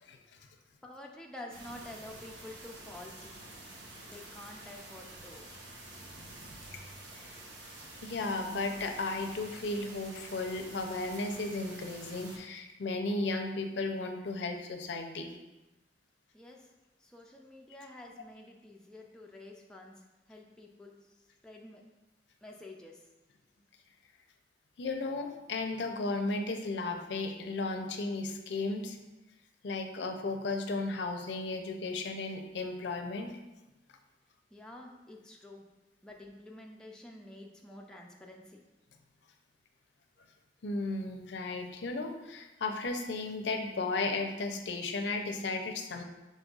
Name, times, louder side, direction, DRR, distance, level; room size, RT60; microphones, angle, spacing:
voice 1, 0.8-3.3 4.0-5.5 16.3-16.6 17.0-19.9 20.3-21.1 21.4-21.8 22.4-23.0 34.5-35.6 36.0-38.6, left 1 dB, 5° left, -1 dB, 0.4 m, -49 dB
sound 1, 1.5-12.4, right 2 dB, 85° right, 0.9 m, -49 dB
voice 2, 8.0-15.3 24.8-29.0 29.6-33.3 40.6-46.0, left 3 dB, 75° left, 4 dB, 0.5 m, -35 dB
5.3 x 4.1 x 2.4 m, 1.0 s
head